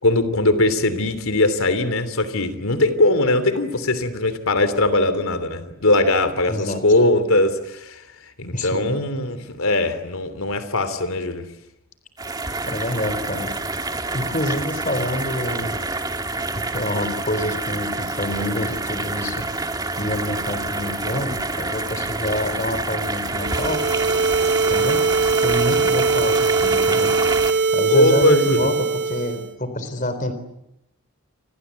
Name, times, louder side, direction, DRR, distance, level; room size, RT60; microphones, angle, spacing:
voice 1, 0.0-8.0 8.4-11.5 27.9-28.7, left 2 dB, 80° left, 11 dB, 3.2 m, -20 dB
voice 2, 6.5-6.8 8.5-8.9 12.7-13.5 14.1-15.8 16.6-19.4 20.0-23.9 24.7-25.1 25.4-26.4 26.6-27.2 27.7-30.3, left 1 dB, 35° left, 10 dB, 4.0 m, -27 dB
sound 1, 12.2-27.5, right 3 dB, 20° right, 1.8 m, -27 dB
sound 2, 23.3-29.5, right 4 dB, 50° right, 2.8 m, -21 dB
29.0 x 24.5 x 8.3 m, 0.84 s
head